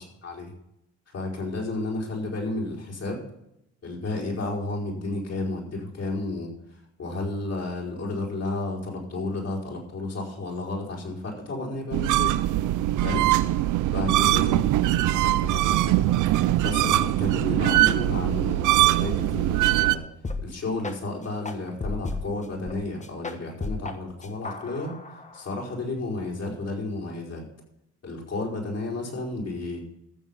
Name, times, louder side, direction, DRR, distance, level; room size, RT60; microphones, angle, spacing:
voice 1, 0.2-0.5 1.1-3.2 3.8-12.4 13.0-13.3 13.9-14.6 15.0-16.3 16.6-20.0 20.4-24.9 25.3-27.5 28.0-29.8, left 2 dB, 55° left, -2 dB, 5.2 m, -32 dB
sound 1, 11.9-19.9, right 15 dB, 85° right, 0.5 m, -22 dB
sound 2, 20.2-20.4 20.8-21.0 21.5-22.8 23.0-24.0 24.2-25.7, left 3 dB, 25° left, 1.3 m, -34 dB
14.5 x 7.3 x 5.6 m, 0.83 s
cardioid pair, 90°, 30 cm